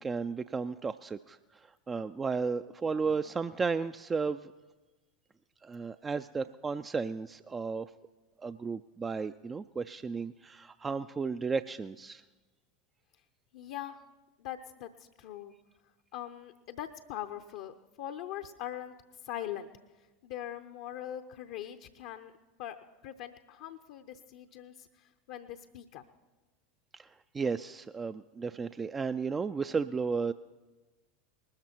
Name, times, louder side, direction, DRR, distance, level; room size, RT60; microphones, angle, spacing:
voice 1, 0.0-4.5 5.6-7.9 8.4-12.2 26.9-30.3, right 5 dB, 20° right, 11 dB, 0.4 m, -34 dB
voice 2, 13.5-14.0 14.4-15.5 16.1-18.9 19.2-19.7 20.0-22.3 22.6-22.8 23.0-26.0, left 11 dB, 60° left, 7 dB, 0.7 m, -42 dB
20.0 x 13.5 x 4.5 m, 1.2 s
hypercardioid pair, 85°, 0 cm